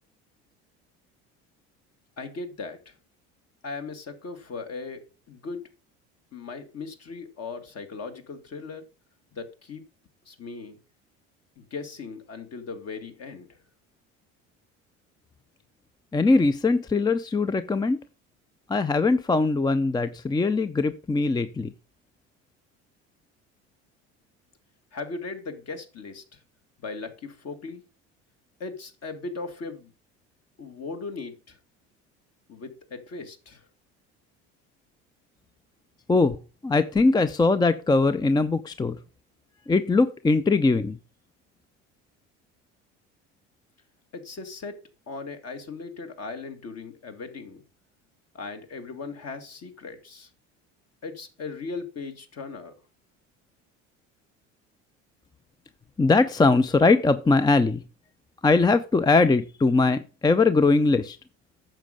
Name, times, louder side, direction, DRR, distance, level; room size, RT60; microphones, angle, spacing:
voice 1, 2.2-2.9 3.6-5.6 6.3-8.9 9.3-9.8 10.3-10.8 11.6-13.6 24.9-26.4 26.8-27.8 28.6-29.9 30.6-31.6 32.5-33.7 44.1-47.6 48.3-50.3 51.0-52.8, left 4 dB, 45° left, 6 dB, 2.1 m, -38 dB
voice 2, 16.1-18.0 18.7-21.7 36.1-36.4 36.6-39.0 39.7-41.0 56.0-57.8 58.4-61.2, left 3 dB, 10° left, 13 dB, 0.5 m, -21 dB
8.9 x 6.6 x 5.2 m, 0.34 s
hypercardioid pair, 70°, 35 cm